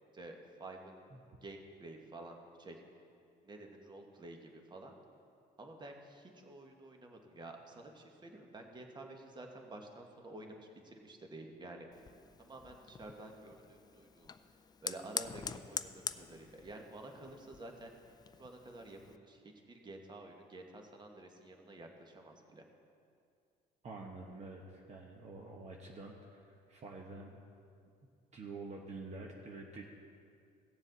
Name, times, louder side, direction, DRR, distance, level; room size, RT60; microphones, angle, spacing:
voice 1, 0.1-1.0 1.4-2.8 3.4-4.9 5.6-12.0 12.4-17.9 18.4-22.6, right 2 dB, 25° right, 3 dB, 1.4 m, -51 dB
Fire, 11.9-19.2, left 6 dB, 25° left, 0.4 m, -46 dB
voice 2, 23.8-27.4 28.3-29.9, right 3 dB, 40° right, 0 dB, 1.1 m, -48 dB
17.5 x 7.2 x 4.0 m, 2.4 s
cardioid pair, 110°, 17 cm